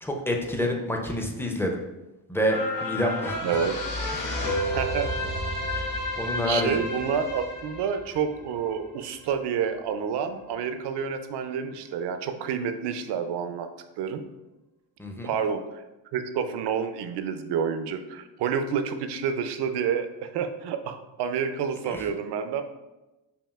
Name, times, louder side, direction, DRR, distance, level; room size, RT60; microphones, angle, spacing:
voice 1, 0.0-1.8 2.3-3.6 4.1-4.7 5.7-5.9 6.2-6.9 15.0-15.3 21.9-22.1, equal, 5° left, 2 dB, 0.5 m, -28 dB
sound 1, 2.5-9.1 9.5-9.6, left 1 dB, 45° left, 1.2 m, -31 dB
voice 2, 3.4-3.7 4.7-5.1 6.5-13.7 14.0-14.2 15.2-15.6 16.1-22.6, right 7 dB, 65° right, 8 dB, 0.5 m, -29 dB
5.4 x 2.4 x 2.3 m, 1.0 s
cardioid pair, 80°, 43 cm